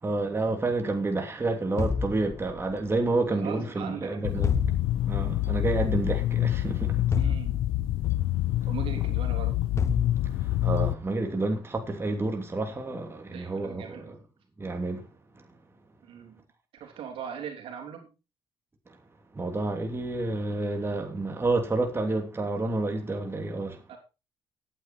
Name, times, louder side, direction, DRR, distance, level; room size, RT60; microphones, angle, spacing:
voice 1, 0.0-4.6 5.1-7.2 10.2-14.2 14.6-15.1 15.3-15.5 18.9-19.0 19.3-23.8, right 2 dB, 25° right, 2.8 m, -29 dB
sound 1, 1.8-2.9 4.4-5.4 7.1-8.2 9.8-10.7, left 4 dB, 30° left, 1.0 m, -30 dB
voice 2, 3.1-4.3 7.1-7.6 8.7-9.6 13.3-14.1 16.0-16.4 16.8-18.1 23.9-24.0, right 8 dB, 75° right, 3.4 m, -40 dB
sound 2, 4.2-10.9, left 15 dB, 85° left, 0.7 m, -27 dB
13.5 x 9.3 x 4.4 m
supercardioid pair, 75°, 9 cm